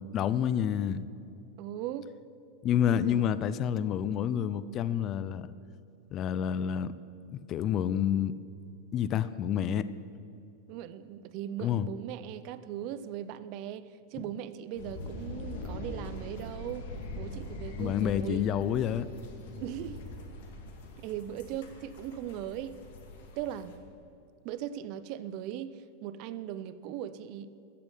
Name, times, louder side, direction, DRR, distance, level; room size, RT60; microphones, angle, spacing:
voice 1, 0.1-1.1 2.6-5.5 6.1-6.9 7.3-8.3 8.9-9.9 11.6-11.9 17.8-19.1, left 9 dB, 25° left, 16 dB, 0.4 m, -28 dB
voice 2, 1.6-2.1 2.9-3.2 10.7-16.9 17.2-18.5 19.6-20.0 21.0-22.8 23.4-23.7 24.4-27.5, right 11 dB, 40° right, 14 dB, 0.6 m, -39 dB
sound 1, 14.8-23.8, left 2 dB, 60° left, 2.3 m, -42 dB
13.5 x 7.0 x 9.1 m, 2.5 s
supercardioid pair, 165°, 0 cm